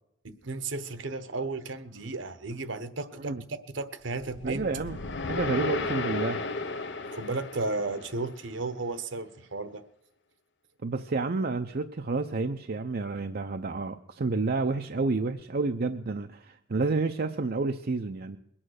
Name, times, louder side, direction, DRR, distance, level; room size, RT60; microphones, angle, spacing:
voice 1, 0.2-4.7 7.0-9.8, right 3 dB, 70° right, 11 dB, 1.1 m, -34 dB
sound 1, 4.2-8.5, left 3 dB, 65° left, 0.9 m, -34 dB
voice 2, 4.4-5.0 5.3-6.4 10.8-18.4, right 3 dB, 55° right, 6 dB, 0.6 m, -30 dB
21.5 x 8.8 x 6.5 m, 0.79 s
head